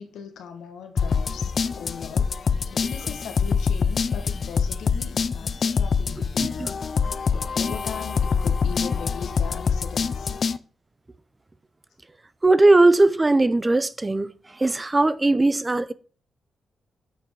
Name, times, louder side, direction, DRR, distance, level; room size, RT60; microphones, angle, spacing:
voice 1, 0.0-2.4 2.7-6.8 7.3-10.4, left 7 dB, 90° left, 1.7 m, -39 dB
sound 1, 1.0-10.6, left 5 dB, 50° left, 0.6 m, -25 dB
voice 2, 12.4-14.3 14.6-15.9, right 2 dB, 20° right, 0.7 m, -18 dB
8.9 x 5.6 x 4.8 m
cardioid pair, 75°, 0 cm